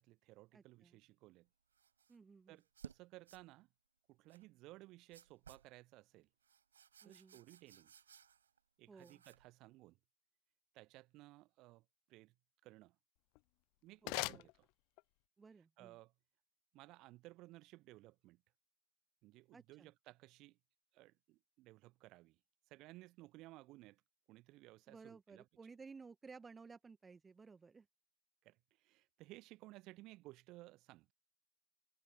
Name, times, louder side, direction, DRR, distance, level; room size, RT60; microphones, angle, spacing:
voice 1, 0.0-1.5 2.5-3.7 4.1-6.3 7.0-7.9 8.8-10.0 10.7-12.3 12.6-13.0 13.8-14.7 15.8-16.1 16.7-18.4 19.2-20.6 20.9-22.4 22.7-24.0 24.3-25.5 28.4-31.1, right 19 dB, 40° right, 0.9 m, -59 dB
voice 2, 0.5-1.0 2.1-2.6 7.0-7.4 8.9-9.2 14.0-14.5 15.4-16.0 19.5-19.9 24.9-27.9, right 4 dB, 15° right, 1.1 m, -57 dB
sound 1, 1.7-2.2 2.6-3.0 3.3-3.4 4.3-4.4 5.1-5.7 6.4-8.6 8.9-9.5, right 8 dB, 70° right, 4.1 m, -59 dB
sound 2, 13.1-15.3, left 33 dB, 45° left, 0.4 m, -45 dB
figure-of-eight pair, 90°, 0 cm